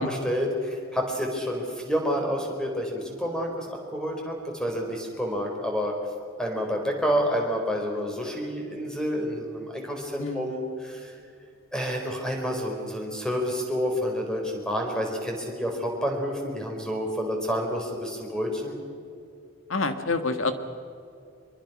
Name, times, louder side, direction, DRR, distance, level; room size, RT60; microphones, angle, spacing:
voice 1, 0.0-5.9 6.4-11.1 11.7-18.8, equal, 5° left, 1 dB, 4.3 m, -29 dB
voice 2, 10.2-10.5 19.7-20.5, left 3 dB, 75° left, 8 dB, 1.8 m, -27 dB
25.0 x 23.0 x 6.2 m, 2.5 s
head